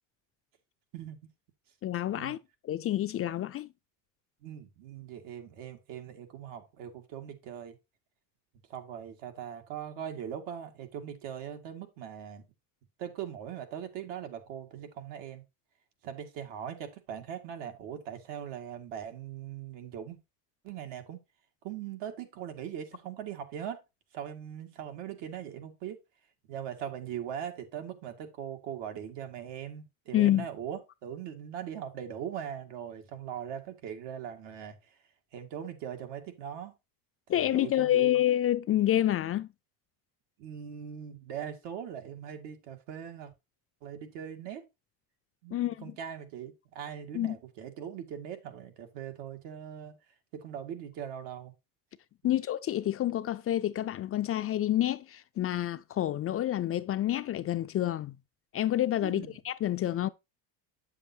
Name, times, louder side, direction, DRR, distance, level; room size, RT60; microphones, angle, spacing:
voice 1, 1.8-2.4 2.6-3.7 30.1-30.5 37.3-39.5 45.5-45.9 47.1-47.4 52.2-58.2 58.5-60.1, left 13 dB, 35° left, 0.4 m, -28 dB
voice 2, 4.4-7.8 8.7-12.4 13.0-15.4 16.0-20.2 20.6-21.2 21.6-23.8 24.1-26.0 26.5-34.8 35.3-36.7 37.3-38.2 40.4-43.3 43.8-44.7 45.4-50.0 50.3-51.5 52.2-52.3 59.0-59.3, right 9 dB, 75° right, 2.0 m, -40 dB
8.3 x 7.2 x 2.7 m
cardioid pair, 120°, 42 cm